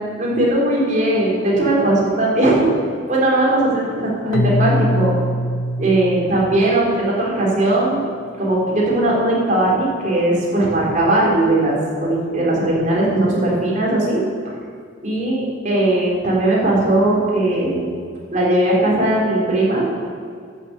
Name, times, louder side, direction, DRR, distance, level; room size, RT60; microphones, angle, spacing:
voice 1, 0.2-2.7 3.1-5.1 5.8-8.1 8.4-14.2 15.0-17.9 18.3-19.9, right 1 dB, 40° right, -5 dB, 3.7 m, -18 dB
Keyboard (musical), 4.3-7.3, left 1 dB, 90° left, 0.9 m, -23 dB
13.0 x 7.3 x 8.1 m, 2.2 s
head